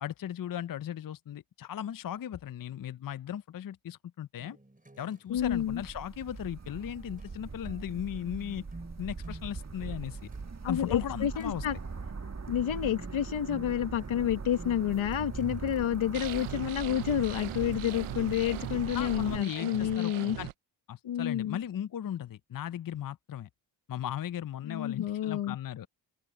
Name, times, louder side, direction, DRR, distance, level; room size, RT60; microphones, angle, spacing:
voice 1, 0.0-4.6 5.0-8.6 9.0-10.3 10.7-11.6 18.9-20.5 20.9-23.5 23.9-25.9, left 10 dB, 45° left, 0.6 m, -37 dB
sound 1, 4.4-19.1, right 1 dB, 15° right, 5.8 m, -54 dB
voice 2, 5.3-5.8 10.6-11.8 12.5-20.4 21.0-21.6 24.6-25.6, left 10 dB, 75° left, 1.5 m, -29 dB
Coot mallard and airplanes, 5.4-19.4, right 4 dB, 35° right, 1.6 m, -41 dB
sound 2, 16.1-20.5, right 16 dB, 90° right, 0.7 m, -40 dB
open air
cardioid pair, 50°, 48 cm